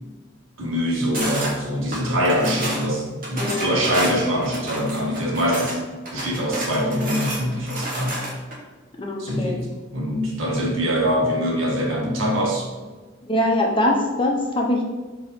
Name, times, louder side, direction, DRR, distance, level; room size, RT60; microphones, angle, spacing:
voice 1, 0.6-5.8 6.1-8.1 9.2-12.7, equal, 85° right, -2 dB, 1.0 m, -23 dB
sound 1, 1.1-1.5 1.9-2.9 3.2-5.8 6.1-8.6, right 1 dB, 45° right, 1.0 m, -30 dB
voice 2, 3.4-3.9 9.0-9.6 13.2-14.8, left 1 dB, 25° left, 0 dB, 0.6 m, -23 dB
3.7 x 2.8 x 4.1 m, 1.3 s
head